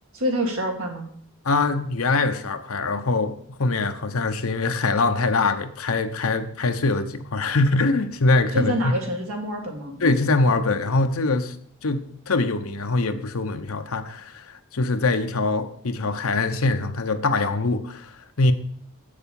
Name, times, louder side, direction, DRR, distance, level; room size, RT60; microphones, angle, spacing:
voice 1, 0.1-1.1 8.5-10.0, equal, 80° right, 2.1 m, -26 dB
voice 2, 1.4-8.9 10.0-11.6 11.8-14.4 14.7-18.5, left 3 dB, 80° left, 0.8 m, -23 dB
8.1 x 6.7 x 5.3 m
head